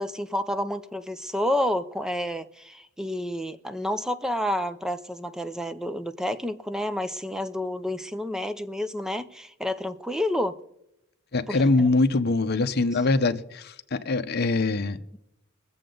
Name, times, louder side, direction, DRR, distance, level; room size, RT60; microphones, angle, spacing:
voice 1, 0.0-10.6 11.5-11.9, left 1 dB, 5° right, 0.5 m, -29 dB
voice 2, 11.3-15.0, left 3 dB, 50° left, 0.8 m, -23 dB
23.0 x 7.7 x 3.9 m
head